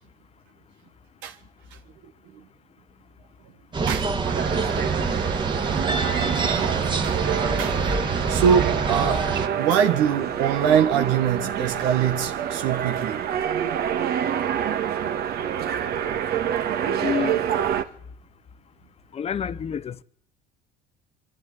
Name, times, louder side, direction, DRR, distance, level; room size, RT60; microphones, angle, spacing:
sound 1, 3.7-9.5, right 4 dB, 25° right, 1.7 m, -25 dB
sound 2, 4.2-17.8, right 9 dB, 60° right, 1.7 m, -27 dB
voice 1, 6.6-7.2 7.6-8.0 8.3-13.2, right 8 dB, 80° right, 1.5 m, -24 dB
voice 2, 17.0-17.4 19.1-20.0, left 7 dB, 35° left, 0.9 m, -28 dB
24.0 x 11.5 x 9.6 m
cardioid pair, 110°, 18 cm